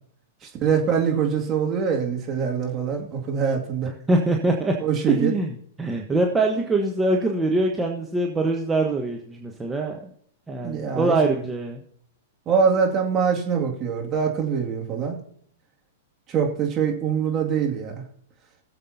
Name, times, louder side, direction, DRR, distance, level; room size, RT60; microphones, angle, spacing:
voice 1, 0.6-3.9 4.8-5.3 10.6-11.2 12.5-15.1 16.3-18.0, right 6 dB, 30° right, 1 dB, 2.2 m, -23 dB
voice 2, 4.1-4.7 5.1-10.0 10.5-11.8, right 2 dB, 15° right, 2 dB, 1.2 m, -23 dB
20.0 x 7.3 x 2.8 m, 0.64 s
hypercardioid pair, 110°, 0 cm